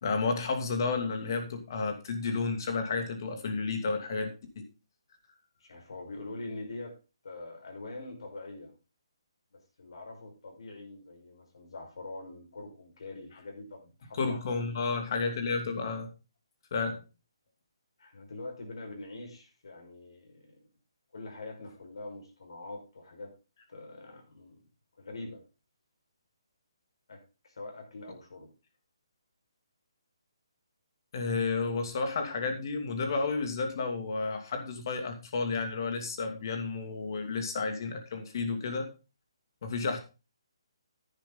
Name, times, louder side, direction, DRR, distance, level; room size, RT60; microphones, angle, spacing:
voice 1, 0.0-4.6 14.1-16.1 16.7-17.0 31.1-38.9 39.6-40.0, left 4 dB, 45° left, 6 dB, 2.7 m, -31 dB
voice 2, 5.6-7.0 7.2-8.7 9.5-14.7 18.0-20.5 21.1-23.3 23.7-24.6 25.0-25.4 27.1-28.5, left 2 dB, 70° left, 2 dB, 5.5 m, -44 dB
10.5 x 9.9 x 4.0 m, 0.31 s
hypercardioid pair, 160°, 3 cm